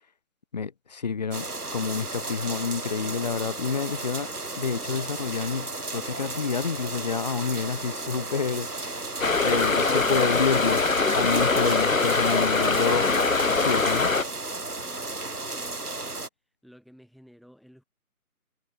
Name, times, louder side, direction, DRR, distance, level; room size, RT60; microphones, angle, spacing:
voice 1, 0.5-4.3 4.6-9.1 9.4-10.8 11.1-13.1 13.5-14.1, left 5 dB, 30° left, 2.7 m, -29 dB
sound 1, 1.3-16.3, right 2 dB, 90° right, 2.5 m, -34 dB
sound 2, 9.2-14.2, left 3 dB, 60° left, 2.1 m, -23 dB
voice 2, 14.8-16.0 16.6-17.8, equal, ahead, 7.6 m, -53 dB
figure-of-eight pair, 160°, 44 cm